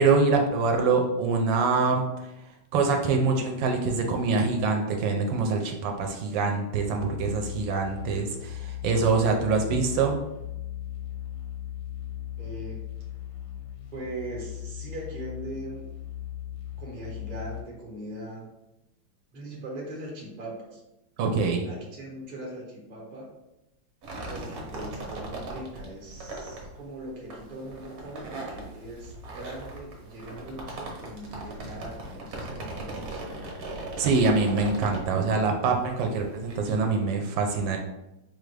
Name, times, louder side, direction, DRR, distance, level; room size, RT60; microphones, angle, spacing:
voice 1, 0.0-2.0 2.7-10.2 21.2-21.7 34.0-37.8, right 4 dB, 75° right, 2 dB, 1.2 m, -24 dB
sound 1, 7.0-17.6, left 11 dB, 65° left, 0.9 m, -38 dB
voice 2, 12.4-12.8 13.9-15.9 16.8-18.5 19.3-20.8 21.6-23.3 24.3-34.1, right 1 dB, 35° right, -2 dB, 0.7 m, -40 dB
sound 2, 24.0-36.7, right 2 dB, 55° right, 1.1 m, -39 dB
4.9 x 2.5 x 3.2 m, 0.93 s
omnidirectional pair, 2.2 m